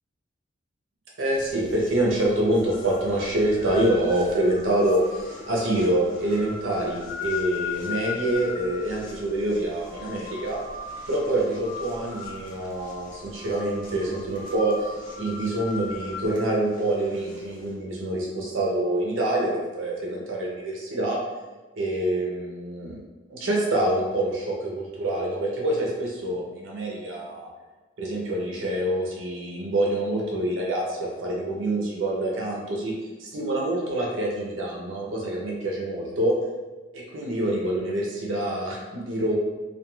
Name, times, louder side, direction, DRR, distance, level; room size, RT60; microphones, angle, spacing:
voice 1, 1.2-10.6 11.1-21.2 21.8-23.0 23.3-27.5 28.0-32.9 33.2-36.3 36.9-39.3, right 1 dB, 75° right, -3 dB, 0.6 m, -26 dB
sound 1, 1.4-17.7, left 5 dB, 40° left, 0.5 m, -39 dB
2.3 x 2.3 x 3.0 m, 1.2 s
head